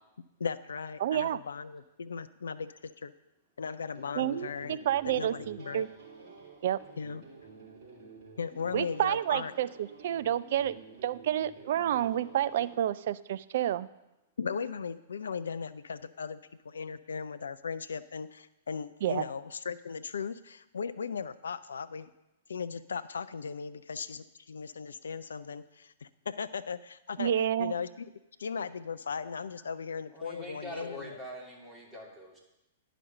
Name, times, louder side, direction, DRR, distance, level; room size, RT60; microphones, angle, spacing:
voice 1, 0.4-3.1 3.6-4.8 5.1-5.9 7.0-7.2 8.4-9.5 14.4-22.1 22.5-27.3 27.6-28.1 28.4-31.2, left 6 dB, 75° left, 13 dB, 0.3 m, -37 dB
voice 2, 1.0-1.4 4.2-5.9 6.6-6.8 8.7-13.9 19.0-19.2 27.2-27.7, right 11 dB, 55° right, 16 dB, 0.3 m, -29 dB
sound 1, 3.9-12.8, right 4 dB, 40° right, 3.8 m, -51 dB
voice 3, 30.1-32.4, left 1 dB, 10° right, -3 dB, 2.7 m, -43 dB
10.0 x 5.0 x 6.6 m, 0.94 s
figure-of-eight pair, 105°, 0 cm